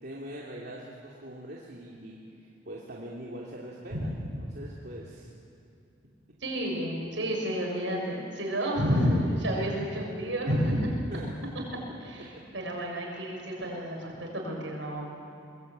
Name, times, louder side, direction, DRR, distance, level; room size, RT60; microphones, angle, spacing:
voice 1, 0.0-4.1 4.4-5.3 11.1-11.8 12.2-12.4, right 1 dB, 55° right, -5 dB, 3.0 m, -42 dB
voice 2, 6.4-10.9 12.5-15.1, equal, 75° right, 0 dB, 7.1 m, -30 dB
23.5 x 21.5 x 9.1 m, 2.7 s
head